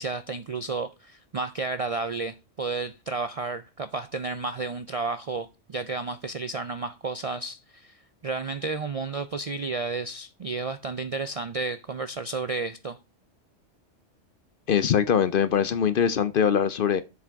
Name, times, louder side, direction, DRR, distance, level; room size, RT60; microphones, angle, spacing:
voice 1, 0.0-13.0, right 3 dB, 55° right, 0.4 m, -32 dB
voice 2, 14.7-17.0, left 8 dB, 55° left, 0.7 m, -22 dB
7.4 x 6.0 x 4.5 m
omnidirectional pair, 1.2 m